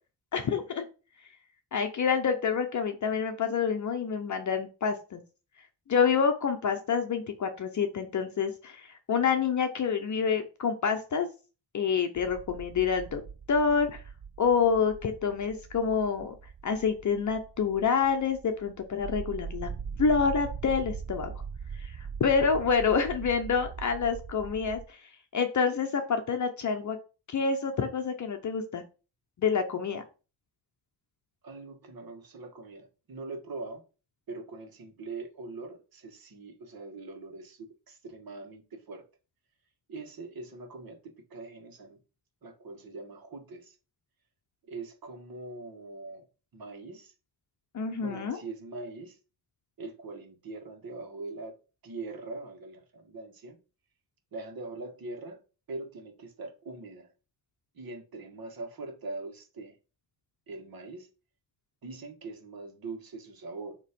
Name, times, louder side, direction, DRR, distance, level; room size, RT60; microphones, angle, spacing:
voice 1, 0.3-0.8 1.7-5.2 5.9-11.3 11.7-13.2 13.5-14.0 14.4-16.3 16.6-19.7 20.0-21.3 21.8-25.0 25.3-27.0 27.3-28.8 29.4-30.0 47.7-48.4, left 6 dB, 45° left, 0.7 m, -27 dB
sound 1, 12.2-24.9, right 6 dB, 30° right, 0.4 m, -41 dB
voice 2, 31.4-33.8 34.3-39.0 39.9-41.0 41.3-42.0 42.4-43.8 44.6-46.3 46.5-47.1 48.0-49.2 49.8-51.5 51.8-53.6 54.3-55.4 55.7-57.1 57.7-59.7 60.5-61.1 61.8-63.8, right 3 dB, 60° right, 1.5 m, -42 dB
7.1 x 3.0 x 5.1 m
wide cardioid pair, 145°, 41 cm